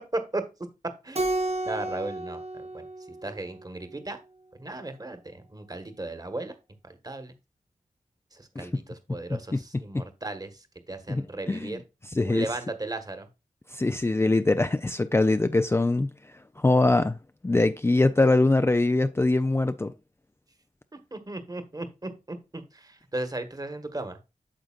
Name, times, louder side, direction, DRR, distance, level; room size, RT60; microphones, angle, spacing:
Keyboard (musical), 1.1-3.8, right 2 dB, 50° right, 1.2 m, -32 dB
voice 1, 1.6-2.9 3.2-4.2 4.6-6.5 6.8-7.3 8.3-11.8 12.3-13.3 21.1-24.2, right 2 dB, 25° right, 1.4 m, -36 dB
voice 2, 11.1-11.8 12.2-12.5 13.7-16.1 16.6-17.2 17.4-19.9, left 2 dB, 20° left, 0.4 m, -23 dB
9.0 x 6.6 x 2.4 m
wide cardioid pair, 75°, 14 cm